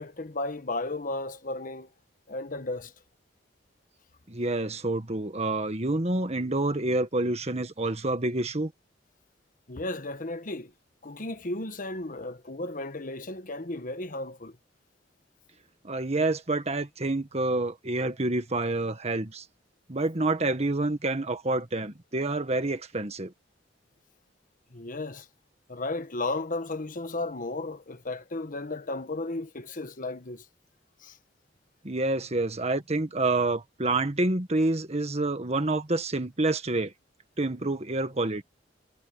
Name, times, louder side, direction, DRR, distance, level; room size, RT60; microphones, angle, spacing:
voice 1, 0.0-1.9 2.3-2.9 9.7-10.7 11.0-14.6 24.7-25.3 25.7-30.5 31.0-31.2, left 2 dB, 50° left, 1.3 m, -34 dB
voice 2, 4.3-8.7 15.8-19.4 19.9-23.3 31.8-36.9 37.4-38.4, right 2 dB, 35° right, 1.6 m, -28 dB
head